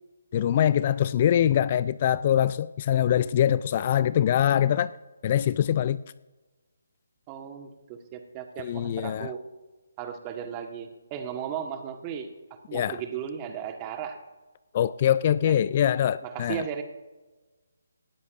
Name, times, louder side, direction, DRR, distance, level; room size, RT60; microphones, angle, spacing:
voice 1, 0.3-4.9 5.2-6.0 8.6-9.3 12.7-13.0 14.7-16.7, left 10 dB, 35° left, 17 dB, 0.3 m, -23 dB
voice 2, 7.3-9.4 10.0-14.2 15.4-15.5 16.2-16.8, right 8 dB, 25° right, 6 dB, 1.4 m, -36 dB
18.5 x 13.0 x 2.6 m, 1.2 s
figure-of-eight pair, 150°, 0 cm